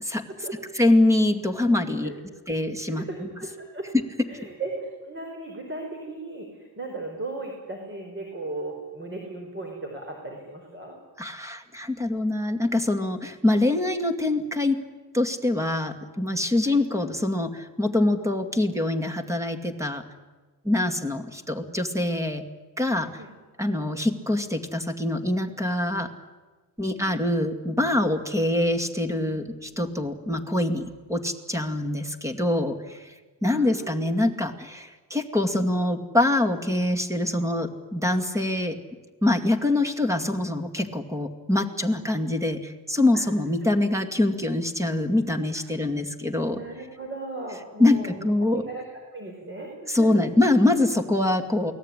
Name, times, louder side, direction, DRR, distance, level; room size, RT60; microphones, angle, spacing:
voice 1, 0.7-2.1 2.5-3.3 11.2-14.8 15.1-20.0 20.6-22.4 22.8-23.2 23.6-26.1 26.8-33.1 33.4-38.8 39.2-46.6 47.8-48.7 49.9-51.7, left 1 dB, 5° right, 7 dB, 2.3 m, -24 dB
voice 2, 2.9-3.9 4.3-11.0 16.6-16.8 23.2-23.3 26.9-27.2 31.1-31.2 33.5-34.1 43.1-43.2 46.5-48.8 49.1-50.1, right 2 dB, 25° right, 2 dB, 4.9 m, -37 dB
28.5 x 19.0 x 10.0 m, 1.3 s
cardioid pair, 140°, 45 cm